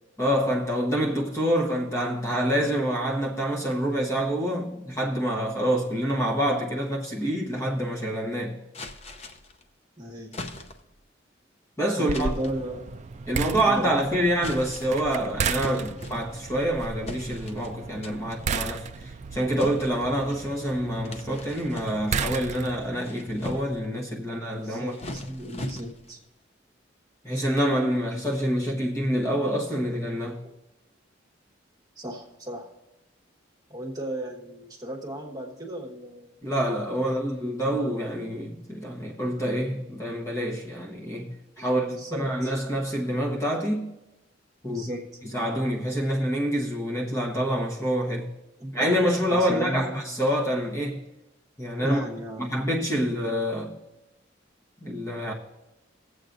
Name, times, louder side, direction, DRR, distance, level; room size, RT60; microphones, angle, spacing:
voice 1, 0.2-8.6 11.8-12.3 13.3-24.9 27.2-30.4 36.4-43.9 44.6-44.8 45.3-48.3 48.7-51.0 51.6-52.0 52.4-53.8 54.8-55.3, equal, 15° left, 1.1 m, -27 dB
sound 1, 8.7-9.6 10.3-11.0 12.1-12.6 13.6-14.0 14.3-15.1 15.6-16.6 17.1-17.7 18.0-18.4 19.6-20.4 21.0-22.3 22.8-23.9 24.6-26.2, left 1 dB, 35° left, 0.7 m, -39 dB
voice 2, 10.0-10.6 12.1-12.9 13.6-14.3 24.2-26.2 32.0-32.7 33.7-36.4 37.1-37.2 41.6-42.5 44.6-45.0 48.6-48.7 49.3-50.0 51.8-52.6 52.9-53.2, right 1 dB, 20° right, 1.4 m, -34 dB
sound 2, 12.1-23.0, right 5 dB, 35° right, 0.3 m, -34 dB
18.0 x 8.0 x 2.6 m
head